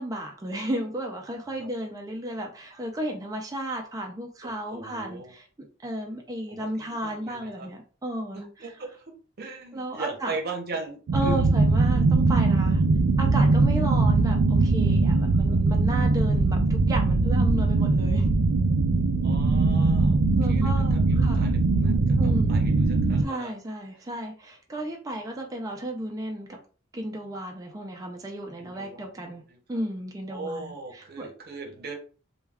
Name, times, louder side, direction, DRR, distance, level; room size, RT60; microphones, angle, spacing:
voice 1, 0.0-5.5 5.8-8.7 9.7-10.4 11.1-12.8 13.2-18.3 20.4-21.5 22.2-22.6 23.2-26.6 26.9-29.4 29.7-31.3, right 1 dB, 20° right, 2 dB, 0.4 m, -33 dB
voice 2, 4.4-5.3 6.5-7.7 8.3-9.0 9.4-11.5 15.5-15.6 19.2-23.5 28.6-29.1 30.3-31.9, right 3 dB, 50° right, 3 dB, 0.8 m, -39 dB
sound 1, 11.1-23.2, right 3 dB, 85° right, 0.4 m, -21 dB
2.2 x 2.2 x 3.3 m, 0.38 s
head